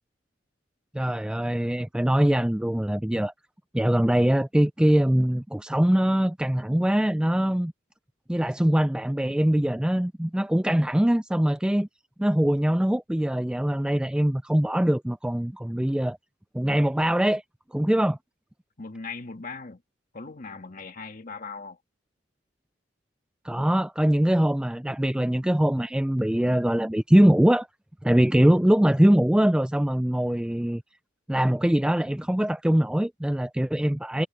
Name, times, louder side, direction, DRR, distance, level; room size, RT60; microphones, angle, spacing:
voice 1, 0.9-3.3 3.7-7.7 8.3-11.9 12.2-16.2 16.5-17.4 17.7-18.2 23.4-27.7 28.0-30.8 31.3-34.3, equal, 5° right, 0.3 m, -22 dB
voice 2, 18.8-19.8 20.1-21.8, left 4 dB, 40° left, 1.7 m, -39 dB
head